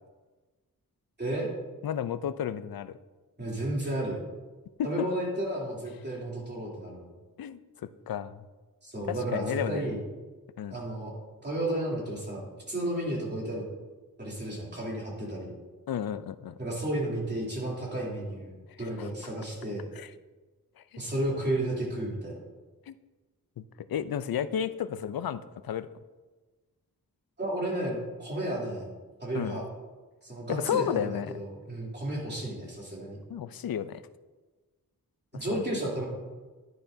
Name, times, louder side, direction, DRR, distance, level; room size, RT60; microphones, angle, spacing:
voice 1, 1.8-3.0 4.8-5.1 7.4-7.6 8.1-8.4 9.1-10.0 10.6-10.8 15.9-16.6 18.8-19.1 19.9-20.1 20.8-21.0 22.9-23.0 23.6-25.9 29.3-29.6 30.5-31.4 33.3-34.0 35.5-35.6, left 9 dB, 75° left, 13 dB, 0.5 m, -32 dB
voice 2, 3.4-4.2 4.8-7.1 8.8-10.0 10.7-11.1 11.4-13.6 14.2-15.5 16.6-19.9 21.0-22.4 27.4-28.9 29.2-29.6 30.2-33.2 35.3-36.0, right 1 dB, 30° right, -4 dB, 3.1 m, -32 dB
11.0 x 10.0 x 2.7 m, 1.3 s
wide cardioid pair, 110°, 36 cm